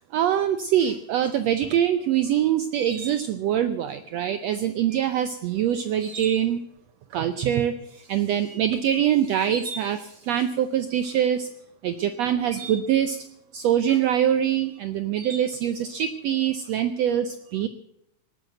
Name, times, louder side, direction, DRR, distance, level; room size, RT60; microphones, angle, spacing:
voice 1, 0.1-6.6 7.1-11.5 11.8-13.2 13.5-17.7, right 10 dB, 85° right, 12 dB, 1.4 m, -24 dB
18.5 x 9.0 x 7.6 m, 0.80 s
omnidirectional pair, 3.8 m